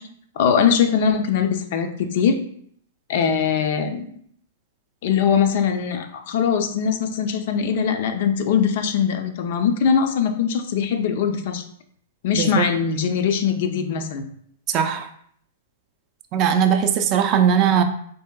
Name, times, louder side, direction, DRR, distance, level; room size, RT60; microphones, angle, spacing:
voice 1, 0.4-2.4 3.1-4.1 5.0-11.6 12.2-14.3, left 7 dB, 60° left, 7 dB, 0.3 m, -21 dB
voice 2, 12.3-12.6 14.7-15.1 16.3-17.8, right 8 dB, 40° right, 7 dB, 0.3 m, -19 dB
2.7 x 2.6 x 2.2 m, 0.65 s
hypercardioid pair, 120°, 0 cm